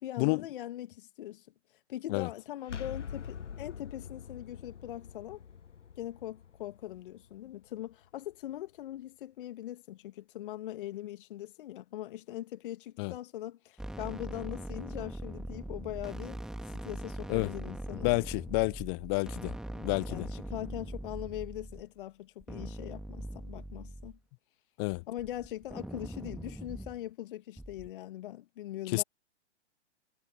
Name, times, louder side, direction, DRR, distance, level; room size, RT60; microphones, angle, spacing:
voice 1, 0.0-1.5 1.9-5.4 6.0-18.1 19.7-24.1 25.1-29.0, left 13 dB, 45° left, 1.7 m, -41 dB
sound 1, 2.6-8.3, left 7 dB, 75° left, 0.9 m, -45 dB
sound 2, 13.8-21.8 22.4-24.2 24.9-27.0 27.6-27.9, right 1 dB, ahead, 2.2 m, -41 dB
voice 2, 17.9-19.6 19.8-20.3 24.8-25.0 28.9-29.0, left 32 dB, 20° left, 0.5 m, -30 dB
figure-of-eight pair, 115°, 36 cm